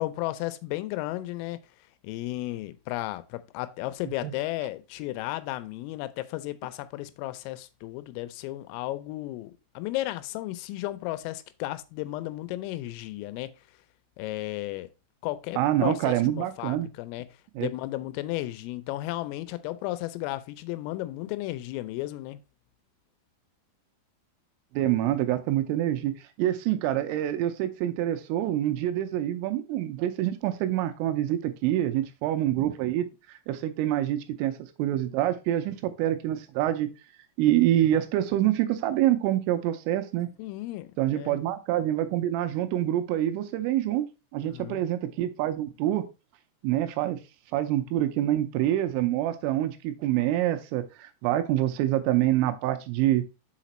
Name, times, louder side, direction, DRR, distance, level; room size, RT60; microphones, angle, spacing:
voice 1, 0.0-1.6 2.0-13.5 14.2-14.9 15.2-17.3 17.6-22.4 40.4-41.4 44.5-44.8, left 17 dB, 85° left, 3.2 m, -34 dB
voice 2, 15.6-16.9 17.6-17.7 24.7-26.1 26.4-33.1 33.5-34.5 34.8-36.9 37.4-40.3 41.0-44.0 44.3-46.0 46.6-47.2 47.5-53.2, right 13 dB, 85° right, 3.2 m, -26 dB
6.6 x 5.0 x 4.2 m
omnidirectional pair, 5.9 m